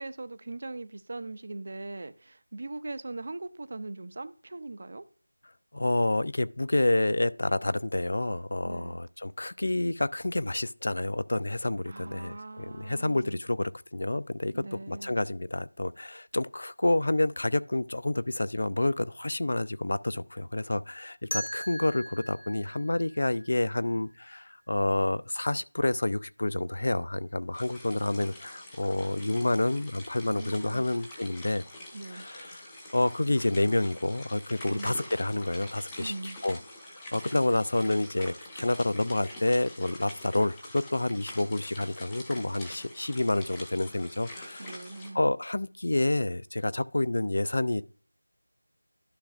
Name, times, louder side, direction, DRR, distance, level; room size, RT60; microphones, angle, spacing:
voice 1, 0.0-5.0 8.6-9.0 11.9-13.4 14.5-15.1 30.3-30.8 31.9-32.3 34.7-35.0 36.0-36.4 44.6-45.2, right 2 dB, 35° right, 0.4 m, -40 dB
voice 2, 5.7-31.6 32.1-32.6 32.9-36.6 37.1-44.8 45.1-47.8, left 2 dB, 50° left, 0.3 m, -29 dB
sound 1, 21.3-24.2, equal, 70° left, 1.8 m, -39 dB
sound 2, 27.5-45.1, left 1 dB, 5° left, 0.7 m, -45 dB
11.5 x 5.9 x 2.4 m
figure-of-eight pair, 175°, 0 cm